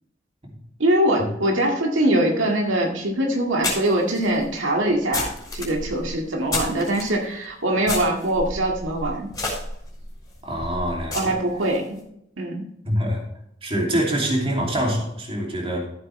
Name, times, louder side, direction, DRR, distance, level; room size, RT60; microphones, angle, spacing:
voice 1, 0.8-5.3 5.5-9.3 11.1-12.0 12.4-12.6, right 1 dB, 85° right, 0 dB, 2.1 m, -22 dB
sound 1, 2.5-2.6 3.6-7.1 7.8-11.8, left 2 dB, 20° left, 4.2 m, -31 dB
voice 2, 10.4-11.4 12.8-13.2 13.6-15.9, equal, 30° right, -1 dB, 2.8 m, -25 dB
14.0 x 7.9 x 3.3 m, 0.75 s
head